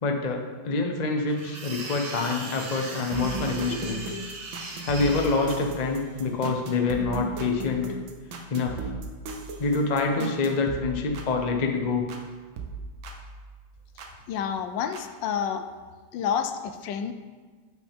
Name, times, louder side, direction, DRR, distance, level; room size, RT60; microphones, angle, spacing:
voice 1, 0.0-4.0 4.8-7.9 8.5-8.8 9.6-12.0, left 4 dB, 55° left, 2 dB, 0.4 m, -26 dB
sound 1, 1.3-5.6, right 3 dB, 70° right, 1.6 m, -38 dB
sound 2, 3.1-12.3 12.6-14.1 14.9-15.0, right 3 dB, 90° right, 1.7 m, -37 dB
voice 2, 14.3-15.7 16.1-17.1, left 7 dB, 75° left, 8 dB, 1.2 m, -29 dB
8.3 x 7.4 x 3.5 m, 1.4 s
omnidirectional pair, 2.1 m